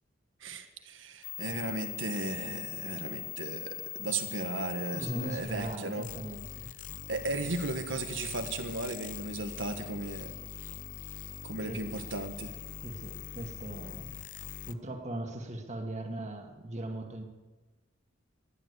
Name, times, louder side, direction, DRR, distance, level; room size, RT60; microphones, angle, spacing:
voice 1, 0.4-6.1 7.1-10.4 11.4-12.5, right 2 dB, 80° right, 7 dB, 1.5 m, -36 dB
sound 1, 1.2-14.7, left 11 dB, 45° left, 0.6 m, -42 dB
voice 2, 4.9-6.7 7.4-7.5 11.6-11.9 12.8-17.2, right 1 dB, 35° right, 4 dB, 1.9 m, -39 dB
14.5 x 10.5 x 8.2 m, 1.2 s
head